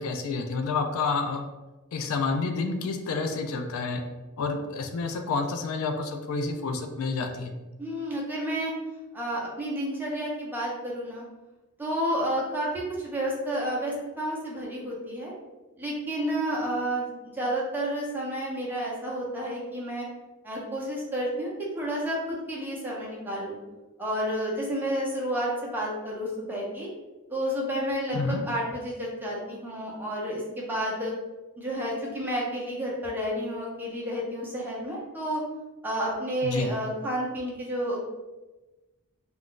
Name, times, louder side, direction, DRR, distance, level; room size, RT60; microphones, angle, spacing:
voice 1, 0.0-1.4 1.9-4.0 4.4-7.5 28.1-28.4 36.4-36.7, left 4 dB, 70° left, 5 dB, 0.3 m, -29 dB
voice 2, 7.8-8.7 9.1-11.2 11.8-15.3 15.8-20.1 20.4-23.6 24.0-26.9 27.3-31.1 31.6-35.4 35.8-38.0, equal, 10° right, -5 dB, 0.7 m, -30 dB
2.4 x 2.2 x 3.7 m, 1.1 s
head